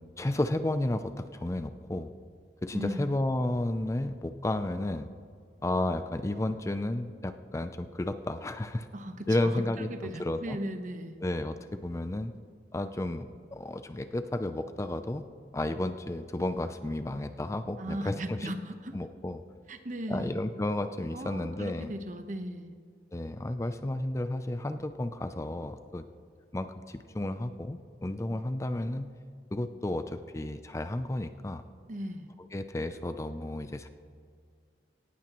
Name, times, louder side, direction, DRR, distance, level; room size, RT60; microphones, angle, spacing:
voice 1, 0.2-2.1 2.6-5.1 5.6-8.9 9.3-10.6 11.2-12.3 12.7-15.2 15.5-18.5 18.9-19.4 20.1-21.9 23.1-26.0 26.5-29.1 29.5-31.6 32.5-33.9, left 1 dB, 15° left, 10 dB, 0.4 m, -32 dB
voice 2, 2.7-3.1 8.9-11.2 17.8-19.0 19.7-20.4 21.1-22.7 31.9-32.3, equal, 45° right, 8 dB, 1.0 m, -37 dB
18.0 x 16.0 x 3.0 m, 2.1 s
head